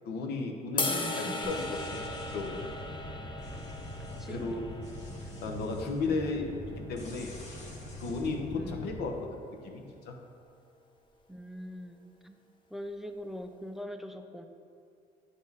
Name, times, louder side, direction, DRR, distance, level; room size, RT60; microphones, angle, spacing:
voice 1, 0.0-2.1 2.3-2.7 4.3-4.6 5.4-6.4 6.9-7.3 8.0-10.2, left 3 dB, 75° left, 2 dB, 0.9 m, -34 dB
sound 1, 0.8-7.0, left 2 dB, 30° left, 0.7 m, -38 dB
voice 2, 0.8-1.6 4.0-4.5 6.0-6.3 8.5-8.9 11.3-12.4 12.7-14.5, equal, ahead, 7 dB, 0.3 m, -42 dB
sound 2, 1.4-9.0, left 1 dB, 45° left, 1.2 m, -43 dB
9.3 x 4.3 x 3.5 m, 2.5 s
cardioid pair, 110°, 17 cm